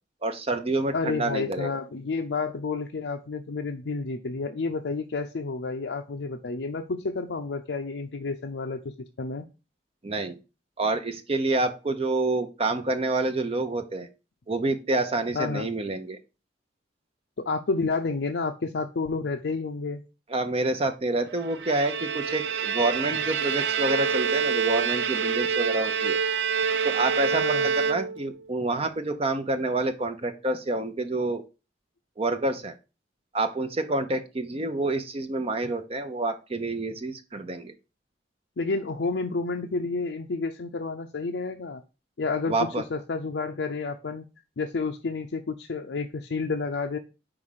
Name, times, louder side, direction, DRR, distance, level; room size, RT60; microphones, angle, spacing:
voice 1, 0.2-1.7 10.0-10.4 10.8-14.1 14.5-16.2 20.3-26.2 26.8-31.4 32.2-32.7 33.3-37.7 42.5-42.8, right 2 dB, 35° right, 8 dB, 0.6 m, -28 dB
voice 2, 0.9-8.8 9.2-9.5 15.3-15.7 17.4-20.0 27.3-27.7 38.6-41.8 42.2-44.2 44.6-47.0, left 4 dB, 85° left, 4 dB, 0.6 m, -30 dB
Bowed string instrument, 21.4-28.4, right 6 dB, 85° right, 0.5 m, -27 dB
4.9 x 4.9 x 5.5 m, 0.31 s
head